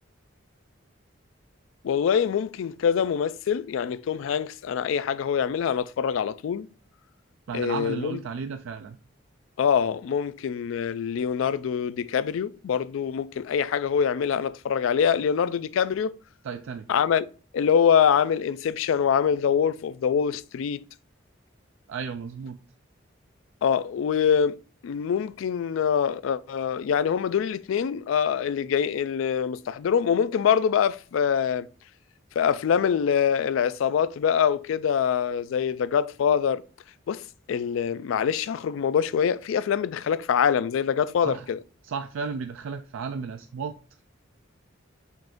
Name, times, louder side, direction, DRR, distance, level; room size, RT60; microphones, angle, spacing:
voice 1, 1.8-6.7 7.5-8.2 9.6-16.1 16.9-17.3 17.5-20.8 23.6-24.6 24.8-31.7 32.4-36.6 37.1-41.6, left 7 dB, 80° left, 0.3 m, -24 dB
voice 2, 7.5-9.0 16.4-16.9 21.9-22.6 41.2-41.5 41.8-43.8, right 5 dB, 75° right, 0.3 m, -33 dB
5.5 x 2.5 x 3.6 m
head